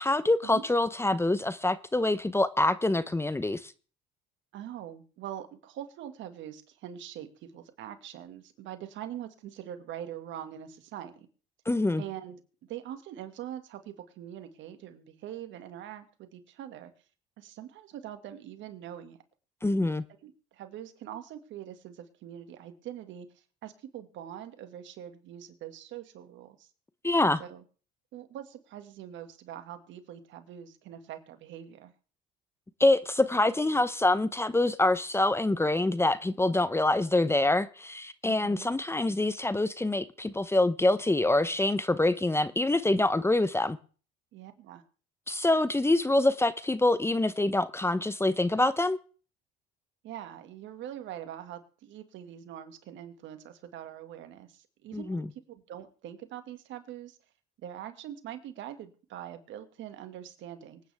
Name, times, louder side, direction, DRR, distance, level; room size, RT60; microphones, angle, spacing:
voice 1, 0.0-3.7 11.7-12.0 19.6-20.0 27.0-27.4 32.8-43.8 45.3-49.0 54.9-55.2, left 2 dB, 10° left, 0.8 m, -25 dB
voice 2, 4.5-11.3 12.0-12.4 12.7-16.9 17.4-19.2 20.2-26.7 27.4-27.6 28.1-31.9 38.3-38.7 44.3-44.8 50.0-57.2 57.6-60.8, right 11 dB, 70° right, 2.1 m, -43 dB
24.5 x 9.5 x 3.5 m
supercardioid pair, 75°, 20 cm